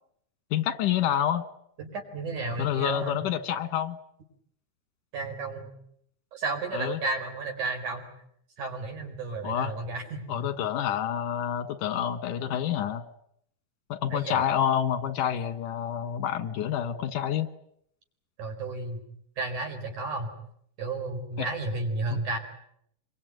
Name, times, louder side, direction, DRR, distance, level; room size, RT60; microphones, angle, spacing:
voice 1, 0.5-1.4 2.6-4.0 6.7-7.0 9.4-9.7 10.3-13.0 13.9-17.5 21.4-21.5, left 10 dB, 85° left, 12 dB, 3.0 m, -28 dB
voice 2, 1.8-3.2 5.1-5.7 6.3-8.0 8.6-10.5 14.1-14.4 18.4-19.0 19.4-20.3 20.8-22.4, right 3 dB, 70° right, 4 dB, 5.9 m, -32 dB
26.5 x 23.0 x 9.2 m, 0.72 s
omnidirectional pair, 3.6 m